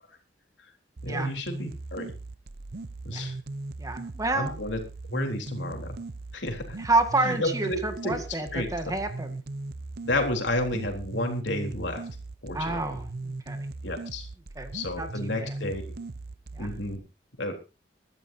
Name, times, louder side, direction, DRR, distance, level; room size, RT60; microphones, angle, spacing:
voice 1, 1.0-2.1 3.0-3.3 4.3-4.8 5.1-6.0 6.3-6.8 7.2-8.2 8.5-8.7 10.0-12.1 12.4-13.0 13.8-14.3 14.7-15.9 16.6-17.0 17.4-17.5, left 1 dB, 85° left, 3 dB, 3.7 m, -31 dB
sound 1, 1.0-17.0, right 2 dB, 60° right, 0.7 m, -38 dB
voice 2, 3.8-4.5 6.8-9.4 12.5-13.7 14.6-15.6 16.5-16.7, right 2 dB, 20° right, 7 dB, 1.8 m, -29 dB
23.5 x 12.5 x 2.8 m, 0.30 s
head